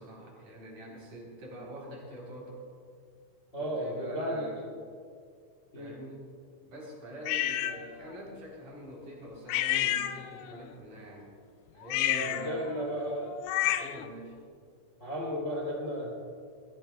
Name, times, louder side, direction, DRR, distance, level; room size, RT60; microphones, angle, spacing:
voice 1, 0.0-2.6 3.6-4.7 5.7-6.3 6.6-11.3 11.7-13.3 13.8-14.4, equal, 45° right, -3 dB, 4.8 m, -45 dB
voice 2, 3.5-4.5 5.7-6.0 12.1-13.2 15.0-16.1, equal, 25° left, -4 dB, 2.0 m, -34 dB
sound 1, 7.3-7.8 9.5-10.6 11.8-14.1, left 13 dB, 85° left, 2.8 m, -30 dB
25.0 x 15.5 x 2.3 m, 2.2 s
omnidirectional pair, 5.1 m